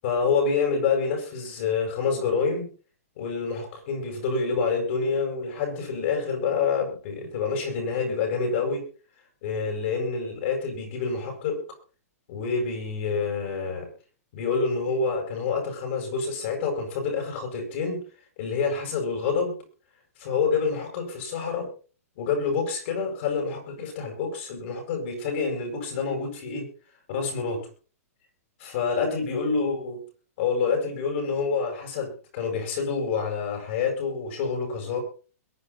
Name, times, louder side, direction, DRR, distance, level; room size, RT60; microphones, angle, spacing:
voice 1, 0.0-2.7 3.2-8.8 9.4-11.6 12.3-13.9 14.3-18.0 18.4-19.6 20.2-21.7 22.2-26.7 27.1-27.7 28.6-30.0 30.4-35.0, left 5 dB, 50° left, 3 dB, 7.9 m, -27 dB
22.0 x 9.6 x 4.3 m, 0.38 s
hypercardioid pair, 155°, 8 cm